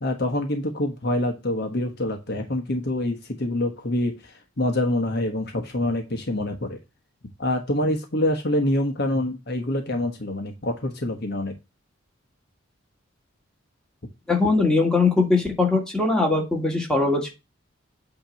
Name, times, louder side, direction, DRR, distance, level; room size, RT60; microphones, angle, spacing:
voice 1, 0.0-4.1 4.6-6.8 7.4-11.5, left 1 dB, 55° left, 3 dB, 1.2 m, -26 dB
voice 2, 14.3-17.3, left 3 dB, 5° left, 0 dB, 1.8 m, -21 dB
8.7 x 2.9 x 6.3 m, 0.25 s
head